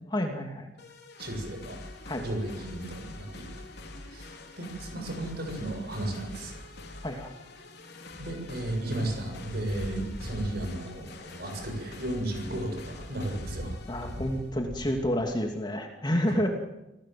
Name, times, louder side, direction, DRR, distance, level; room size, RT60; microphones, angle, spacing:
voice 1, 0.1-0.7 2.1-2.3 7.0-7.3 13.9-16.5, equal, 20° left, 3 dB, 2.6 m, -29 dB
sound 1, 0.8-14.5, left 2 dB, 55° left, 3.9 m, -45 dB
voice 2, 1.2-1.8 2.2-3.5 4.1-6.5 8.2-13.7, right 1 dB, 55° right, 4 dB, 7.0 m, -34 dB
sound 2, 9.2-15.5, equal, 70° right, 7.1 m, -42 dB
29.0 x 18.5 x 7.7 m, 0.95 s
head